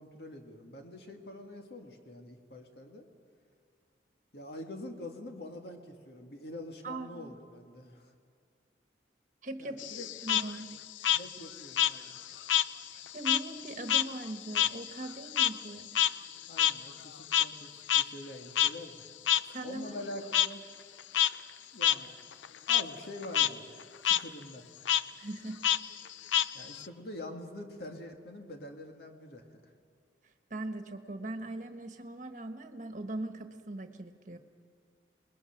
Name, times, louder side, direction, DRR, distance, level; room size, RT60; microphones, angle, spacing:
voice 1, 0.0-3.1 4.3-8.1 9.6-10.1 11.1-12.1 16.5-19.0 19.6-20.3 21.7-22.1 22.7-23.8 24.0-24.6 26.5-29.6, left 1 dB, 60° left, 3 dB, 2.0 m, -45 dB
voice 2, 6.8-7.3 9.4-10.7 13.1-15.9 19.5-20.0 20.4-20.6 25.1-25.6 30.5-34.4, right 2 dB, 40° right, 6 dB, 1.4 m, -40 dB
Frog, 9.8-12.7 13.0-17.6 17.9-18.0 18.6-18.7 19.3-19.4 20.3-20.5 21.0-21.3 21.8-22.0 22.3-22.8 23.2-23.5 23.8-24.2 24.9-25.0 25.6-26.9, left 11 dB, 85° left, 0.5 m, -27 dB
28.0 x 21.0 x 5.9 m, 2.2 s
head